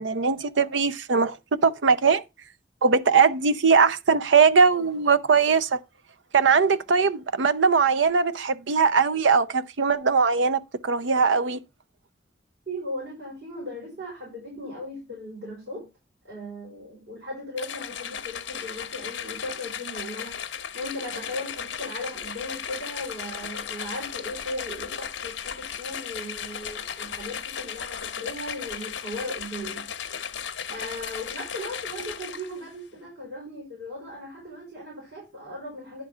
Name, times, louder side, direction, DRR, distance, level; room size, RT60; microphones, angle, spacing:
voice 1, 0.0-1.4 1.6-2.2 2.8-5.8 6.3-11.6, right 5 dB, 85° right, 0.6 m, -20 dB
voice 2, 12.7-15.9 16.2-29.9 30.7-36.0, left 1 dB, 60° right, 5.2 m, -37 dB
sound 1, 17.6-32.7, left 8 dB, 80° left, 0.8 m, -36 dB
10.5 x 3.7 x 5.5 m
head